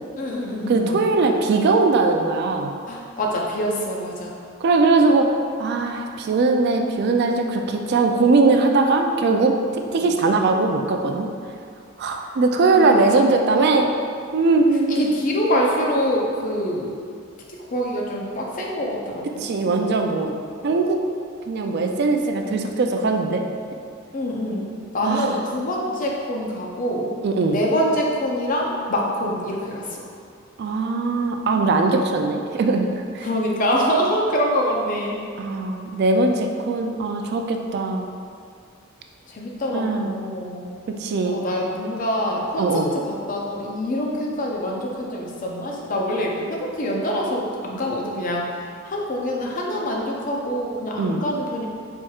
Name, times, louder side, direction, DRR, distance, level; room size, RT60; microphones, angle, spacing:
voice 1, 0.2-1.1 2.9-4.4 10.0-10.1 12.7-13.1 14.9-16.9 17.5-19.3 24.1-27.1 27.5-30.1 33.2-35.2 39.3-40.9 41.2-48.5 48.8-51.7, equal, 40° left, -1 dB, 0.5 m, -25 dB
voice 2, 0.7-2.7 4.6-11.3 12.0-13.9 14.3-15.0 19.4-20.3 20.6-21.0 21.5-23.4 25.0-25.4 27.2-27.6 30.6-33.3 35.4-38.0 39.7-40.2 41.0-41.4 42.6-42.9 51.0-51.2, right 3 dB, 50° right, 4 dB, 0.3 m, -20 dB
4.4 x 4.4 x 2.4 m, 2.3 s
head